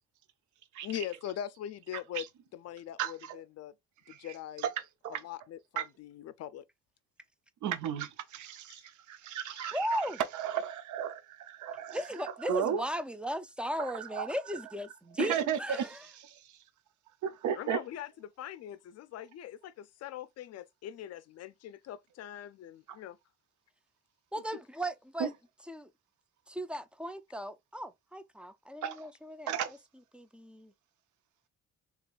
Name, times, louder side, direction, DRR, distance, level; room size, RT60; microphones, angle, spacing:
voice 1, 0.8-2.3 2.5-3.7 4.1-4.7 5.1-6.6 8.7-8.9 9.5-9.7 17.5-23.2 24.5-24.6, left 11 dB, 55° left, 0.5 m, -42 dB
voice 2, 3.0-3.4 4.1-4.2 4.6-4.7 5.0-5.2 5.8-5.9 7.6-8.8 9.1-10.0 10.3-12.8 13.8-14.3 15.2-15.9 16.2-16.4 17.2-17.8 25.2-25.3 28.8-29.0 29.5-29.7, right 8 dB, 75° right, 0.7 m, -34 dB
voice 3, 9.7-10.2 11.9-16.0 24.3-25.3 25.7-25.9 26.5-29.5 30.1-30.7, equal, 5° right, 0.4 m, -36 dB
3.6 x 3.0 x 2.4 m
cardioid pair, 90°, 30 cm